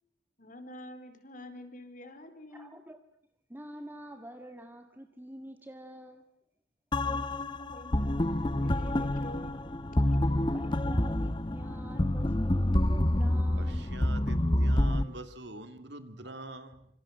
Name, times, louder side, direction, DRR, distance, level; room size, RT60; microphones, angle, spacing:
voice 1, 0.4-2.7 7.0-9.7, left 1 dB, 45° left, 9 dB, 4.2 m, -47 dB
voice 2, 2.5-3.0 3.5-6.2 10.5-13.9 16.2-16.5, right 1 dB, 10° right, 6 dB, 1.5 m, -47 dB
sound 1, 6.9-15.0, left 1 dB, 25° left, 1.0 m, -28 dB
voice 3, 13.6-16.9, right 2 dB, 65° right, 9 dB, 2.8 m, -44 dB
27.0 x 25.0 x 7.5 m, 0.73 s
head